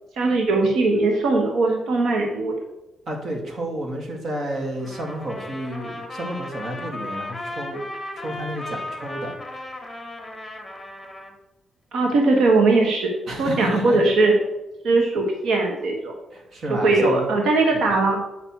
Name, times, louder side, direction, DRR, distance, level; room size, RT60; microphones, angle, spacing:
voice 1, 0.2-2.5 11.9-13.1 13.4-14.3 14.8-16.1 16.7-18.2, right 3 dB, 85° right, 1 dB, 1.3 m, -20 dB
voice 2, 3.1-7.8 8.1-9.3 13.3-14.1 16.3-17.3 17.7-17.9, right 1 dB, 55° right, 0 dB, 2.2 m, -31 dB
Trumpet, 4.8-11.3, left 1 dB, 5° left, 1.9 m, -35 dB
9.3 x 5.9 x 4.6 m, 1.0 s
cardioid pair, 105°, 0 cm